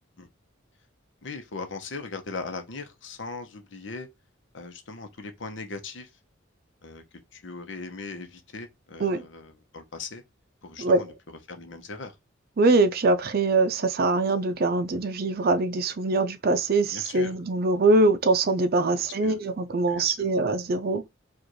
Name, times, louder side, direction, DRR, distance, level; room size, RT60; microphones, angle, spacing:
voice 1, 1.2-4.1 4.5-6.1 6.8-7.0 7.3-10.2 10.6-12.1 16.9-17.3 19.2-19.4 19.9-20.1, left 3 dB, 65° left, 0.9 m, -39 dB
voice 2, 12.6-21.0, right 3 dB, 50° right, 0.5 m, -23 dB
5.0 x 2.5 x 3.0 m
head